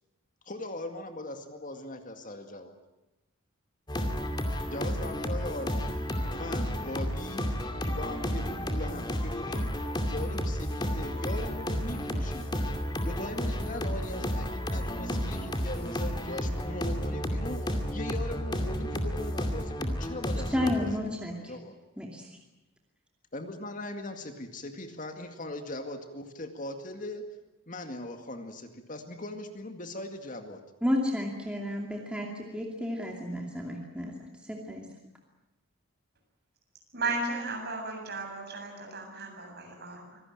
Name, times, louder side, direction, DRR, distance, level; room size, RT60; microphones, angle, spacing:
voice 1, 0.5-2.7 4.7-6.0 6.3-9.8 10.1-12.5 13.0-21.7 23.3-27.3 27.7-30.6, left 1 dB, 40° left, 6 dB, 2.1 m, -40 dB
sound 1, 3.9-20.8, equal, 20° left, 2.4 m, -32 dB
voice 2, 20.5-21.5 22.0-22.3 30.8-34.9, left 1 dB, 5° right, 0 dB, 2.6 m, -32 dB
voice 3, 36.9-40.2, right 3 dB, 50° right, 2 dB, 7.7 m, -35 dB
25.5 x 18.5 x 9.0 m, 0.99 s
head